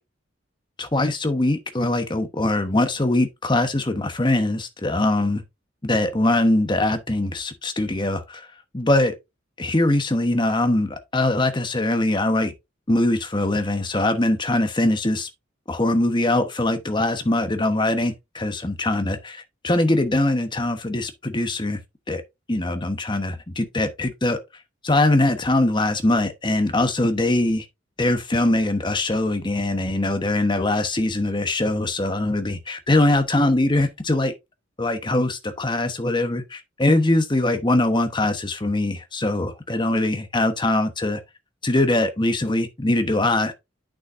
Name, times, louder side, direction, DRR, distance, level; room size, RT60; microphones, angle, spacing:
voice 1, 0.8-5.4 5.8-8.5 8.7-9.1 9.6-12.5 12.9-15.3 15.7-21.8 22.1-22.2 22.5-24.4 24.8-27.7 28.0-34.3 34.8-41.2 41.6-43.5, left 2 dB, 25° left, 1.0 m, -22 dB
8.6 x 6.4 x 2.5 m
head